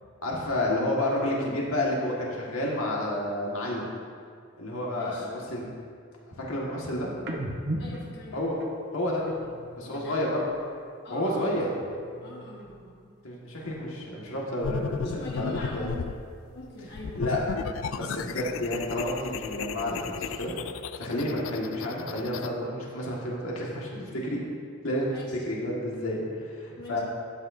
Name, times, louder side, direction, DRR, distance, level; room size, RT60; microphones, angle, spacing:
voice 1, 0.2-3.9 4.6-5.7 6.4-7.1 8.3-8.6 8.9-9.3 9.8-10.4 11.1-11.7 13.2-15.9 17.2-17.5 17.9-20.5 21.0-24.4 24.8-25.1 25.5-27.0, left 1 dB, 90° left, -3 dB, 1.8 m, -30 dB
voice 2, 4.9-5.3 7.8-8.3 9.8-10.2 11.0-11.7 12.2-13.1 15.0-15.9 16.5-17.9 25.1-25.4 26.8-27.0, left 2 dB, 55° left, -4 dB, 1.3 m, -42 dB
sound 1, 7.2-10.8 11.1-12.9 13.2-15.1 15.4-17.3, right 1 dB, 50° right, 0.9 m, -41 dB
sound 2, 14.6-16.2 16.9-22.5, left 6 dB, 75° left, 0.4 m, -35 dB
12.5 x 8.8 x 2.7 m, 2.1 s
head